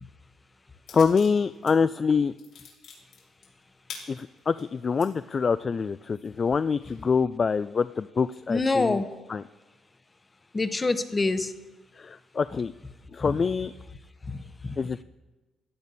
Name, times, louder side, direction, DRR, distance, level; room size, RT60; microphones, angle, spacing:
sound 1, 0.9-1.7 2.1-5.1 5.6-5.7 6.1-7.0, left 6 dB, 80° left, 3.7 m, -45 dB
voice 1, 0.9-2.3 4.1-9.0 9.3-9.4 12.0-12.7 13.1-13.7 14.8-15.0, left 5 dB, 40° left, 13 dB, 0.3 m, -25 dB
voice 2, 8.5-9.1 10.5-11.5 14.3-14.8, left 3 dB, 25° left, 11 dB, 0.9 m, -26 dB
15.5 x 10.5 x 4.1 m, 1.2 s
cardioid pair, 90°, 0 cm